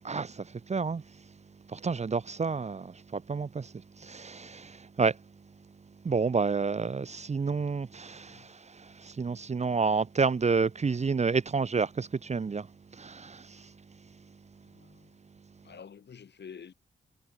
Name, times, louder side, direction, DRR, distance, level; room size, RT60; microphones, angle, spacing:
voice 1, 0.0-1.0 1.7-5.2 6.0-12.7 12.9-13.7, right 4 dB, 35° right, 0.8 m, -30 dB
voice 2, 14.6-15.2 15.6-16.7, left 7 dB, 65° left, 6.8 m, -49 dB
cardioid pair, 60°, 19 cm